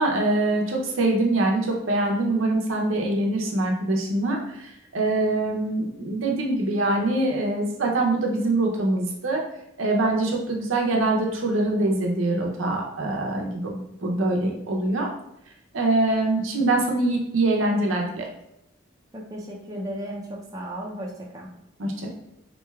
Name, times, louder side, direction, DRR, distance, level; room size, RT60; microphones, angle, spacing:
voice 1, 0.0-9.4 9.8-15.1 15.7-18.3 21.8-22.1, right 2 dB, 70° right, 0 dB, 0.6 m, -24 dB
voice 2, 19.1-21.5, equal, 15° right, -3 dB, 0.5 m, -35 dB
3.7 x 3.1 x 2.3 m, 0.84 s
head